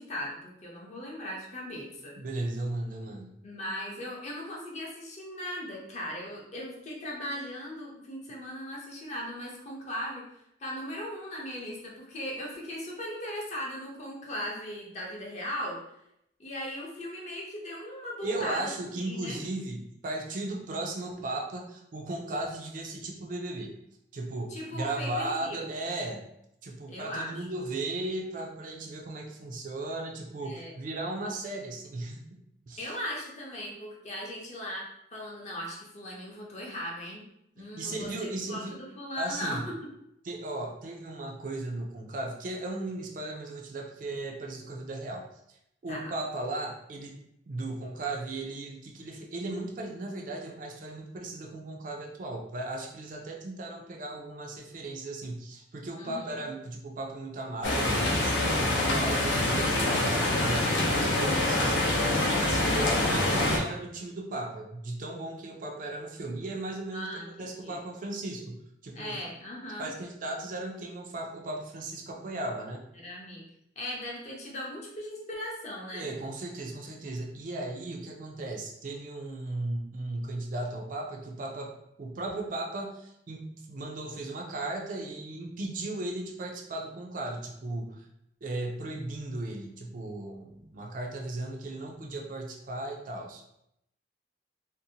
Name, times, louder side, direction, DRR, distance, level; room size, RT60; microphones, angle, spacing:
voice 1, 0.0-2.1 3.4-10.2 10.6-15.8 16.4-18.7 19.0-19.4 24.5-25.7 26.9-27.5 30.4-30.7 32.8-37.2 37.6-39.8 45.9-46.1 56.0-56.3 66.9-67.8 68.9-69.9 73.0-73.4 73.8-76.1, equal, 40° left, -2 dB, 0.6 m, -38 dB
voice 2, 2.2-3.4 18.2-23.7 24.1-26.3 26.6-32.4 32.7-32.9 37.6-38.8 39.2-39.6 40.2-45.3 45.8-47.2 47.5-68.6 68.8-69.2 69.8-72.8 75.9-81.7 82.0-88.1 88.4-93.4, right 2 dB, 45° right, 1 dB, 0.4 m, -36 dB
sound 1, 57.6-63.6, left 1 dB, 85° left, 0.5 m, -25 dB
2.6 x 2.1 x 2.7 m, 0.78 s
head